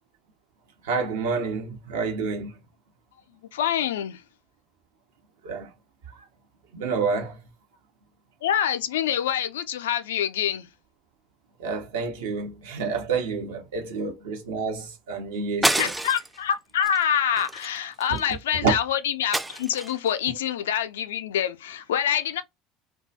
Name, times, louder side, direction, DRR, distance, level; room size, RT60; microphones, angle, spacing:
voice 1, 0.8-2.5 5.4-5.7 6.2-6.3 6.7-7.4 11.6-15.9 18.1-18.2 18.6-18.7, right 5 dB, 75° right, 0.9 m, -28 dB
voice 2, 3.5-4.2 8.4-10.7 15.8-22.4, left 9 dB, 75° left, 0.4 m, -26 dB
sound 1, 15.6-16.4 16.8-17.0 17.4-18.3 19.3-20.1, right 1 dB, 10° right, 0.4 m, -27 dB
2.3 x 2.2 x 2.6 m
hypercardioid pair, 70°, 0 cm